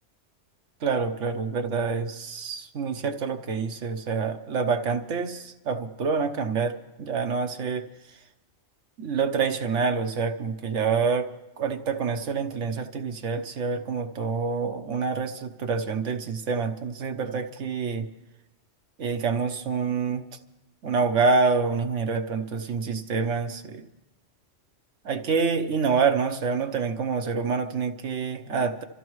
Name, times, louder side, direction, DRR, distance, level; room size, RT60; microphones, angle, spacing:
voice 1, 0.8-7.8 9.0-11.3 11.6-18.1 19.0-20.2 20.8-23.8 25.0-28.8, right 5 dB, 90° right, 6 dB, 1.3 m, -27 dB
27.0 x 14.0 x 3.1 m, 0.99 s
omnidirectional pair, 1.2 m